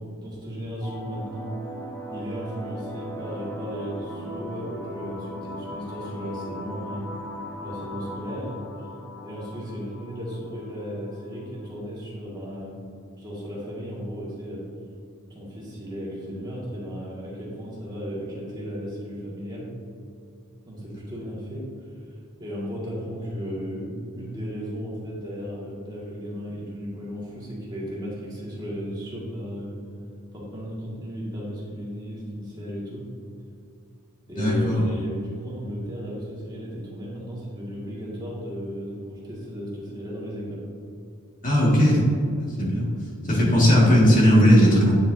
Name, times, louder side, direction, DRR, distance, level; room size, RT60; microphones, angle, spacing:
voice 1, 0.0-1.5 2.1-7.1 7.6-8.5 9.2-12.7 13.2-14.6 15.3-19.7 20.7-21.7 22.4-29.7 30.3-33.0 34.3-40.7, equal, 20° right, -6 dB, 1.9 m, -35 dB
sound 1, 0.8-11.8, equal, 10° left, 1.2 m, -38 dB
voice 2, 34.4-34.8 41.4-42.0 42.4-42.9 43.3-44.9, equal, 35° left, -5 dB, 1.8 m, -17 dB
9.4 x 7.6 x 2.7 m, 2.5 s
head